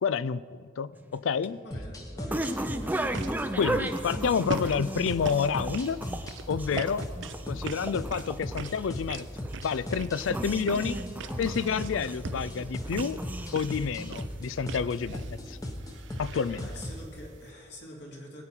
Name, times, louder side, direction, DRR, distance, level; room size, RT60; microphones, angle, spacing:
voice 1, 0.0-1.6 3.5-6.0 6.5-7.1 7.5-9.3 9.6-11.0 11.4-13.2 13.5-15.6 16.2-16.7, left 6 dB, 85° left, 17 dB, 0.4 m, -29 dB
sound 1, 1.0-14.5, right 1 dB, 10° right, 0.5 m, -36 dB
voice 2, 1.6-3.1 16.5-18.4, equal, 60° left, -1 dB, 2.5 m, -45 dB
sound 2, 1.7-17.1, left 1 dB, 20° left, 0.9 m, -38 dB
sound 3, 2.8-17.5, right 4 dB, 70° right, 0.5 m, -43 dB
20.0 x 8.6 x 4.5 m, 2.2 s
head